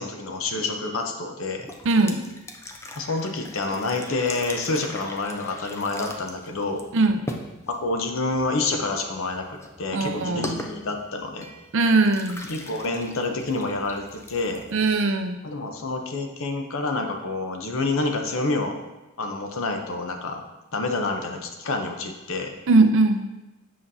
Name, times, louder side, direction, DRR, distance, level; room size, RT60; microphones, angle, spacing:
voice 1, 0.0-1.7 3.0-6.8 7.7-11.5 12.5-14.6 15.4-18.8 19.2-20.4 20.7-22.5, left 3 dB, 65° left, 4 dB, 0.8 m, -28 dB
sound 1, 1.6-15.3, left 1 dB, 15° left, 0.5 m, -40 dB
voice 2, 1.8-2.2 6.9-7.2 9.9-10.7 11.7-12.4 14.7-15.4 22.7-23.3, right 3 dB, 60° right, 7 dB, 0.5 m, -20 dB
7.6 x 5.7 x 2.7 m, 1.0 s
head